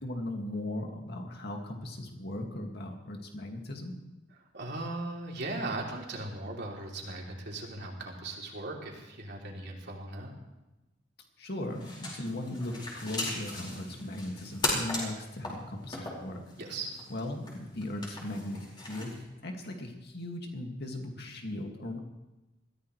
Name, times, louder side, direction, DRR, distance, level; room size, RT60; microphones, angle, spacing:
voice 1, 0.0-4.0 11.4-16.4 17.1-18.6 18.9-22.0, left 1 dB, 55° left, 2 dB, 2.2 m, -38 dB
voice 2, 4.5-10.3 16.6-17.0, right 2 dB, 60° right, -1 dB, 3.1 m, -38 dB
sound 1, 11.7-19.2, left 1 dB, 25° left, 4.9 m, -38 dB
21.5 x 14.5 x 3.3 m, 1.0 s
head